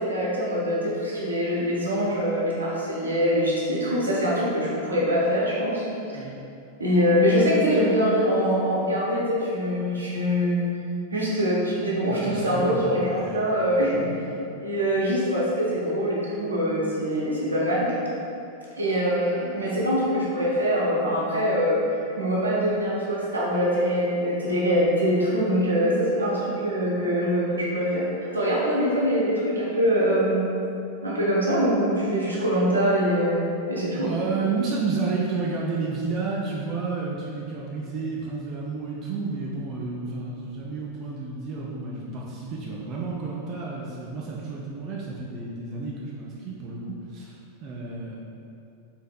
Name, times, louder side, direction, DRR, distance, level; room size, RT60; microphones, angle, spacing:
voice 1, 0.0-5.8 6.8-10.6 11.1-14.1 14.6-17.9 18.7-21.8 22.2-30.5 31.0-34.1, equal, 80° right, -6 dB, 0.7 m, -23 dB
voice 2, 12.1-13.5 34.0-46.8 47.1-48.2, right 4 dB, 35° right, -3 dB, 0.3 m, -31 dB
4.1 x 2.6 x 2.2 m, 2.6 s
figure-of-eight pair, 90°, 0 cm